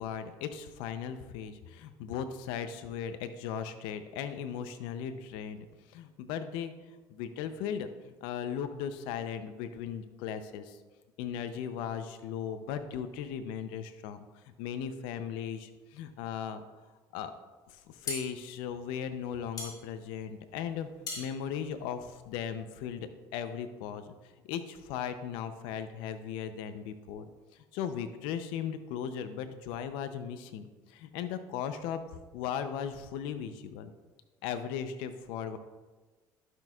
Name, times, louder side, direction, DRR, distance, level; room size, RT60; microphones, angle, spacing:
voice 1, 0.0-10.8 11.2-16.6 17.1-17.3 17.7-24.1 24.4-27.3 27.5-33.9 34.4-35.6, left 8 dB, 85° left, 10 dB, 0.6 m, -37 dB
sound 1, 17.7-22.6, left 3 dB, 45° left, 2.5 m, -42 dB
11.5 x 6.2 x 2.4 m, 1.2 s
supercardioid pair, 90°, 8 cm